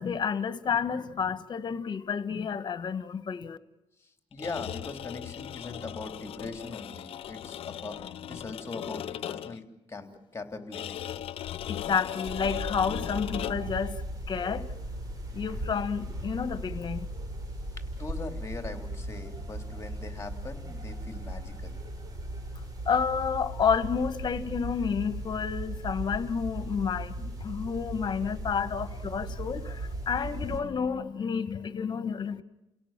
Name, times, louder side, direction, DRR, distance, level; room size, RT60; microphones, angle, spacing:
voice 1, 0.0-3.6 11.7-14.0 14.3-14.7 15.3-17.1 22.8-32.4, left 6 dB, 50° left, 1.6 m, -30 dB
voice 2, 4.0-8.0 8.3-11.0 17.9-21.8, left 3 dB, 30° left, 3.5 m, -41 dB
sound 1, 4.3-9.7 10.7-13.8, left 11 dB, 80° left, 0.8 m, -38 dB
sound 2, 12.2-30.6, right 1 dB, 40° right, 7.0 m, -37 dB
30.0 x 17.5 x 7.5 m
cardioid pair, 100°, 10 cm